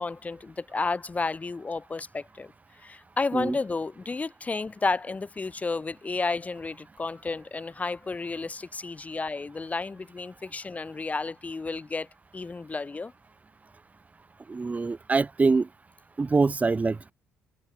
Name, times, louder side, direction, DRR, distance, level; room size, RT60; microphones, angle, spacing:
voice 1, 0.0-2.5 2.8-12.1 12.3-13.1, left 3 dB, 25° left, 1.0 m, -32 dB
voice 2, 14.5-15.7 16.2-17.1, right 4 dB, 25° right, 0.9 m, -24 dB
supercardioid pair, 65°, 6 cm